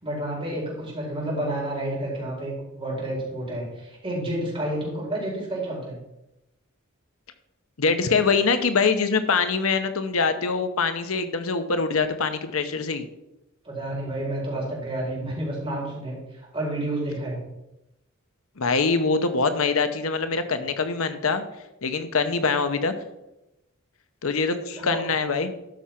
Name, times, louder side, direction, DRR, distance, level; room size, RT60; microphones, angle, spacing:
voice 1, 0.0-6.0 13.6-17.4 24.8-25.0, right 1 dB, 25° right, -4 dB, 4.6 m, -30 dB
voice 2, 7.8-13.1 18.6-21.4 21.8-22.9 24.2-25.5, left 4 dB, 70° left, 10 dB, 0.9 m, -24 dB
12.5 x 5.7 x 5.8 m, 0.91 s
head